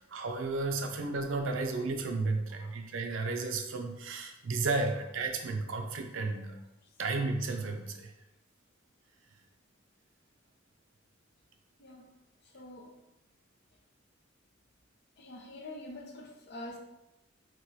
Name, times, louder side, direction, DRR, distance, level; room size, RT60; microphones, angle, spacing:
voice 1, 0.0-6.6 7.0-8.1, right 3 dB, 75° right, 4 dB, 0.5 m, -33 dB
voice 2, 11.8-12.1 12.4-12.9 15.2-16.8, left 1 dB, 55° left, 1 dB, 0.6 m, -46 dB
4.4 x 2.2 x 2.7 m, 0.92 s
head